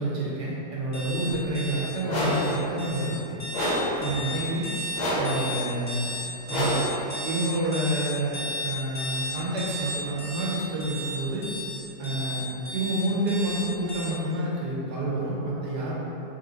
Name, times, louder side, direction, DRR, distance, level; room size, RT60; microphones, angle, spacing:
voice 1, 0.0-3.4 4.0-4.7 5.1-6.1 6.5-6.7 7.2-11.4 12.0-12.4 12.7-15.9, right 1 dB, 85° right, -6 dB, 1.5 m, -28 dB
sound 1, 0.9-14.0, left 1 dB, 85° left, 0.3 m, -34 dB
sound 2, 2.1-2.5 3.5-4.0 5.0-5.4 6.5-7.0, left 1 dB, 40° left, 0.7 m, -27 dB
3.7 x 3.5 x 3.9 m, 3.0 s
omnidirectional pair, 1.7 m